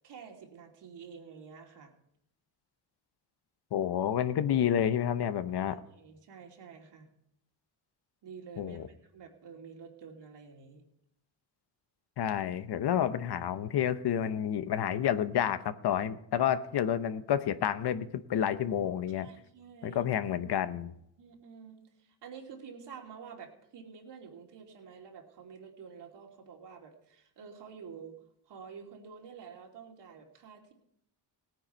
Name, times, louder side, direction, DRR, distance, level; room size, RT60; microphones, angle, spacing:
voice 1, 0.0-1.9 5.9-7.1 8.2-10.8 19.1-20.1 21.2-28.2 28.5-30.7, right 6 dB, 70° right, 1 dB, 2.8 m, -49 dB
voice 2, 3.7-5.8 8.6-8.8 12.2-19.3 19.8-20.9, left 9 dB, 65° left, 12 dB, 0.9 m, -29 dB
17.5 x 9.3 x 4.5 m, 0.76 s
cardioid pair, 105°, 43 cm